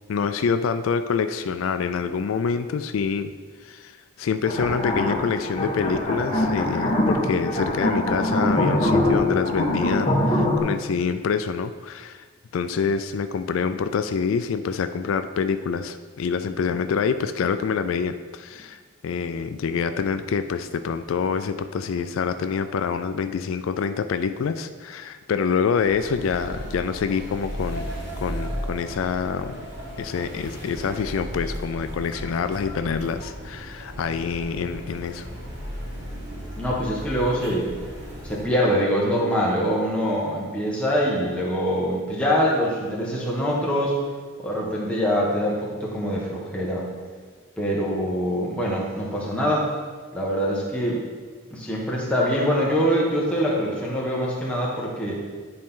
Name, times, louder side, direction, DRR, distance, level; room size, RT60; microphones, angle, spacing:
voice 1, 0.1-3.3 3.6-12.3 12.5-27.8 28.2-29.7 30.0-35.3, left 6 dB, 85° left, 10 dB, 0.4 m, -26 dB
sound 1, 4.4-10.6, left 1 dB, 30° left, 1.3 m, -23 dB
sound 2, 25.8-38.4, equal, 55° right, 1.5 m, -35 dB
voice 2, 36.6-37.7 38.2-44.0 44.4-46.9 47.6-49.7 50.1-51.0 51.5-55.2, equal, 5° left, -5 dB, 1.3 m, -24 dB
10.0 x 4.3 x 3.8 m, 1.5 s
head